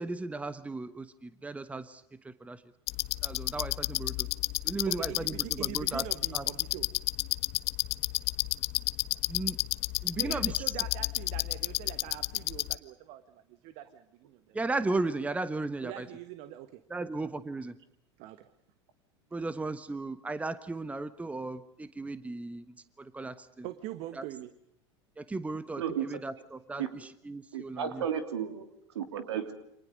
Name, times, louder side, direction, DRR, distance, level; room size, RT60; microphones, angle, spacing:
voice 1, 0.0-2.6 3.2-4.3 4.6-6.0 6.3-6.5 9.3-9.6 10.0-10.6 14.5-16.1 16.9-17.7 19.3-22.7 23.0-23.6 24.2-24.3 25.2-28.0, right 2 dB, 10° right, 14 dB, 1.2 m, -36 dB
sound 1, 2.9-12.8, left 20 dB, 45° left, 0.9 m, -31 dB
voice 2, 4.9-6.9 10.2-14.6 15.8-17.1 18.2-18.5 23.6-24.5, right 14 dB, 45° right, 12 dB, 1.5 m, -43 dB
voice 3, 25.8-26.2 26.8-26.9 27.5-29.5, right 8 dB, 65° right, 9 dB, 3.0 m, -34 dB
29.5 x 26.5 x 5.2 m, 0.72 s
figure-of-eight pair, 80°, 15 cm